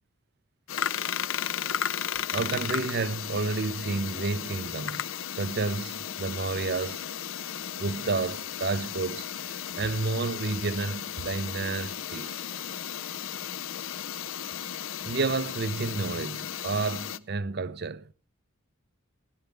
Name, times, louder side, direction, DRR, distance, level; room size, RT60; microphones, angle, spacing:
sound 1, 0.7-17.2, left 9 dB, 75° left, 0.6 m, -35 dB
voice 1, 2.3-5.1 5.4-7.0 7.8-9.3 9.7-12.4 15.0-18.1, right 3 dB, 55° right, 0.7 m, -30 dB
16.0 x 11.5 x 3.4 m
head